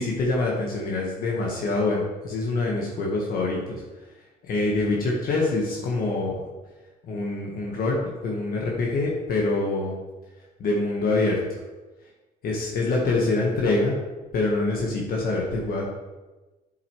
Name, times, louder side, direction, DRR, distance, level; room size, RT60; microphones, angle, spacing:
voice 1, 0.0-3.8 4.4-6.3 7.0-8.0 8.2-10.0 10.6-11.4 12.4-13.9 14.3-15.8, left 2 dB, 60° left, -2 dB, 1.5 m, -25 dB
8.3 x 7.5 x 3.2 m, 1.2 s
cardioid pair, 110°, 17 cm